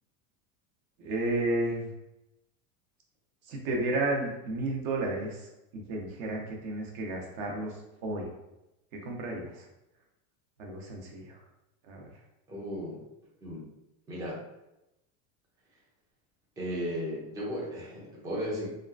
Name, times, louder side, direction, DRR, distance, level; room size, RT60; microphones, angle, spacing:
voice 1, 1.0-1.9 3.4-8.3 8.9-9.7 10.6-11.4 11.8-12.1, right 2 dB, 55° right, 0 dB, 0.8 m, -32 dB
voice 2, 12.5-13.0 13.4-13.7 14.1-14.4 16.6-18.7, equal, 10° right, -5 dB, 0.3 m, -35 dB
2.8 x 2.4 x 2.3 m, 0.92 s
supercardioid pair, 155°, 41 cm